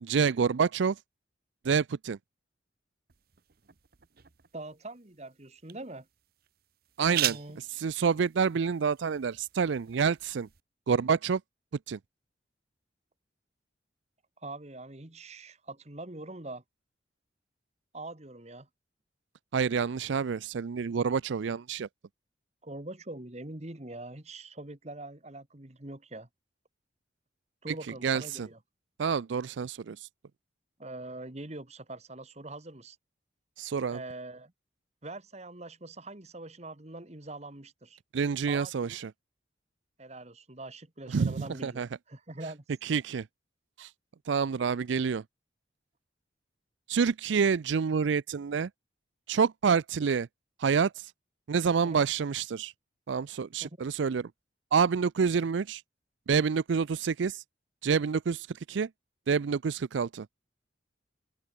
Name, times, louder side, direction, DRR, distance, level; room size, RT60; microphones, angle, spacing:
voice 1, 0.0-1.0 1.6-2.2 7.0-10.5 10.9-11.4 11.9-12.0 19.5-21.9 28.0-28.5 29.0-30.1 33.6-34.0 38.1-39.1 41.1-41.4 41.6-41.9 42.8-43.3 43.8-43.9 44.3-45.2 46.9-48.7 49.3-50.3 50.6-51.1 51.5-52.7 53.1-54.3 54.7-55.8 56.3-57.4 57.8-58.9 59.3-60.3, right 6 dB, 70° right, 0.4 m, -28 dB
sound 1, 3.1-10.6, right 13 dB, 50° right, 0.8 m, -40 dB
voice 2, 4.5-6.1 7.0-7.6 14.4-16.6 17.9-18.7 22.6-26.3 27.6-28.6 30.8-33.0 33.9-34.5 35.0-38.0 38.5-39.0 40.0-42.6 51.8-52.1 53.6-53.7, right 2 dB, 35° right, 1.7 m, -43 dB
open air
head